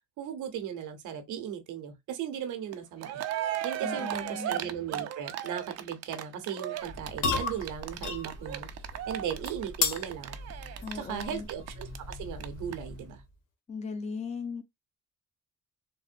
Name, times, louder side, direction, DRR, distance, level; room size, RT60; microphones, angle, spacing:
voice 1, 0.2-3.2 3.6-8.7 9.1-10.4 10.9-13.2, right 9 dB, 80° right, 0.9 m, -37 dB
Cheering, 2.7-2.8 3.0-12.1 12.4-12.5 12.7-12.8, right 11 dB, 60° right, 0.5 m, -36 dB
voice 2, 3.8-4.5 10.8-11.5 13.7-14.6, left 5 dB, 25° left, 0.6 m, -37 dB
sound 1, 6.8-13.2, left 4 dB, 85° left, 1.2 m, -36 dB
3.5 x 2.1 x 2.5 m
cardioid pair, 90°, 30 cm